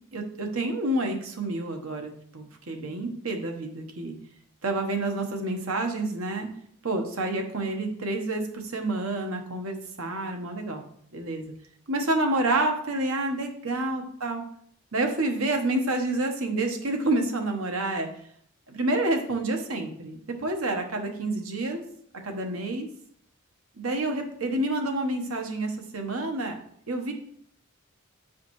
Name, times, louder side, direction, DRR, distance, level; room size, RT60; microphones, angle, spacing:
voice 1, 0.1-4.1 4.6-6.5 6.8-10.8 11.1-11.5 11.9-14.4 14.9-18.1 18.7-21.8 22.2-22.9 23.8-27.1, right 2 dB, 80° right, 3 dB, 1.2 m, -28 dB
8.6 x 5.0 x 3.1 m, 0.64 s
head